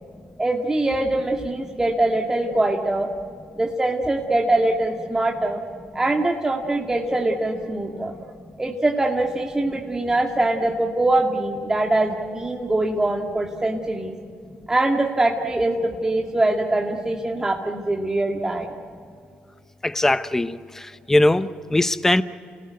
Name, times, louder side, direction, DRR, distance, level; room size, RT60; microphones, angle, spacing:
voice 1, 0.4-3.1 3.6-5.6 5.9-8.1 8.6-14.1 14.7-18.7, right 2 dB, 15° right, 0 dB, 2.1 m, -23 dB
voice 2, 19.8-22.2, left 1 dB, 10° left, 13 dB, 0.9 m, -21 dB
29.5 x 18.0 x 9.4 m, 2.3 s
cardioid pair, 85°, 3 cm